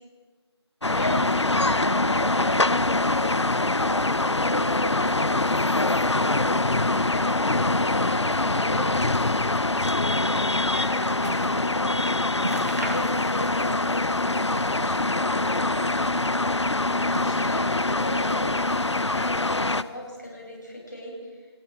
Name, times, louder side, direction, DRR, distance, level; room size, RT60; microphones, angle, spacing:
sound 1, 0.8-19.8, left 2 dB, 80° left, 1.0 m, -24 dB
voice 1, 1.0-4.0 4.5-6.7 7.0-9.2 9.9-12.2 12.9-16.1 16.9-21.4, equal, 40° left, -2 dB, 7.7 m, -37 dB
sound 2, 11.1-11.7 12.0-12.1 12.4-13.7 14.0-14.9 15.3-16.1 16.8-17.8 18.3-19.0 19.3-20.0 20.7-20.8, right 1 dB, 35° right, 2.7 m, -38 dB
29.0 x 19.5 x 4.9 m, 1.5 s
figure-of-eight pair, 180°, 14 cm